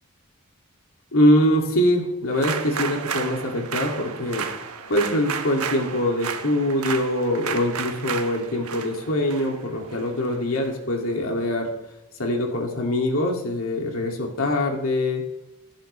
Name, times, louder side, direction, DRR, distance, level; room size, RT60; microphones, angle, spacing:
voice 1, 1.1-4.4 4.9-11.7 12.2-15.2, left 1 dB, 65° left, 1 dB, 2.7 m, -23 dB
sound 1, 2.3-10.7, right 6 dB, 80° right, 1.1 m, -33 dB
16.0 x 10.5 x 3.4 m, 0.93 s
head